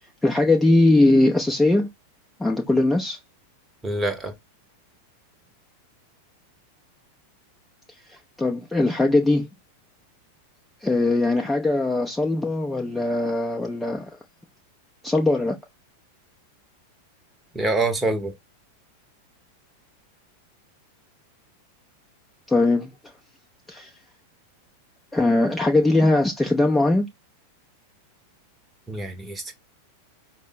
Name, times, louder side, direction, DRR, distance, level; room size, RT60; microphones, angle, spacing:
voice 1, 0.2-1.9 2.4-3.2 8.4-9.5 10.8-14.1 15.0-15.6 22.5-22.9 23.7-23.9 25.1-27.1, left 2 dB, 5° left, 0.6 m, -20 dB
voice 2, 3.8-4.3 17.5-18.3 28.9-29.5, right 2 dB, 15° right, 1.0 m, -25 dB
5.2 x 2.1 x 4.0 m
figure-of-eight pair, 90°, 0 cm